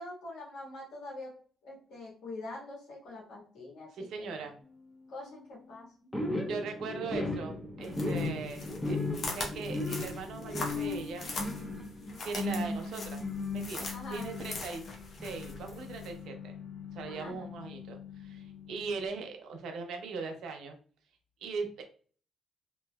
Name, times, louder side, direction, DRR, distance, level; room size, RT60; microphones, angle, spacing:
voice 1, 0.0-1.3 1.6-4.5 5.1-6.1 13.9-14.3 17.1-17.5, left 2 dB, 80° left, -5 dB, 1.4 m, -45 dB
voice 2, 3.9-4.6 6.5-9.1 9.3-11.3 11.6-11.8 12.2-13.2 13.5-14.8 15.2-16.5 16.9-20.8 21.4-21.8, right 4 dB, 75° right, 4 dB, 0.6 m, -40 dB
sound 1, 6.1-19.1, left 2 dB, 5° left, 0.9 m, -37 dB
sound 2, 7.8-16.1, left 3 dB, 50° left, 0.8 m, -42 dB
3.0 x 2.8 x 2.2 m, 0.44 s
cardioid pair, 90°, 0 cm